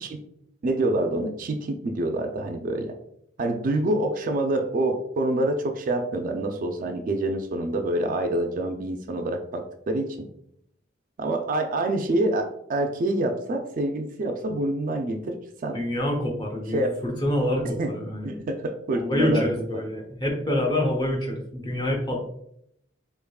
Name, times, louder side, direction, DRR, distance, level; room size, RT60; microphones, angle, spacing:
voice 1, 0.6-2.9 3.4-10.3 11.2-15.4 15.6-15.8 16.7-16.9 17.8-17.9 18.2-19.5 19.7-19.8, right 1 dB, 45° right, 5 dB, 0.3 m, -26 dB
voice 2, 15.7-18.3 18.9-22.2, left 1 dB, 25° left, -1 dB, 0.7 m, -26 dB
3.5 x 3.4 x 2.2 m, 0.73 s
head